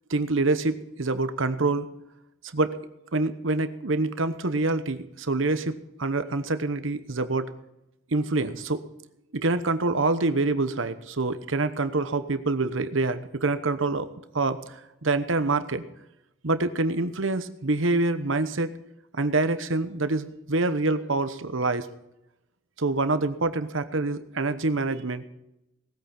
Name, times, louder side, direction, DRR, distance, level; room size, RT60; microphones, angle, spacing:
voice 1, 0.1-1.9 2.5-2.8 3.1-7.5 8.1-8.8 9.3-14.1 14.3-15.8 16.4-18.7 19.1-21.9 22.8-25.2, right 3 dB, 70° right, 11 dB, 1.0 m, -26 dB
19.0 x 8.9 x 5.9 m, 0.86 s
head